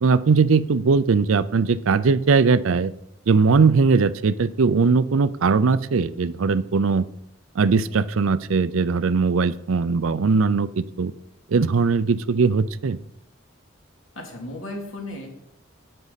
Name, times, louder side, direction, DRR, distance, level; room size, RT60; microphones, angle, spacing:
voice 1, 0.0-2.9 3.3-7.1 7.6-11.1 11.5-13.0, right 4 dB, 85° right, 16 dB, 0.5 m, -20 dB
voice 2, 14.1-15.3, left 1 dB, 85° left, 0 dB, 2.7 m, -34 dB
10.5 x 8.6 x 4.1 m, 0.77 s
head